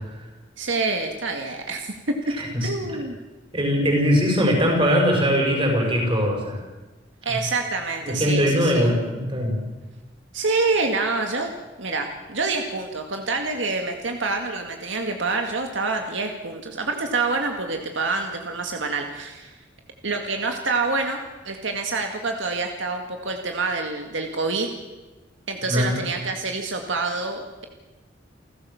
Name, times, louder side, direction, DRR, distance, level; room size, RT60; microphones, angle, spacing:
voice 1, 0.6-2.2 2.6-3.2 7.2-8.9 10.3-11.5 11.8-19.6 20.0-24.7 25.5-27.7, right 3 dB, 75° right, 3 dB, 2.1 m, -27 dB
voice 2, 2.4-2.7 3.5-6.6 8.0-9.7 25.7-26.0, equal, 30° right, 1 dB, 6.1 m, -21 dB
29.5 x 15.0 x 7.2 m, 1.2 s
head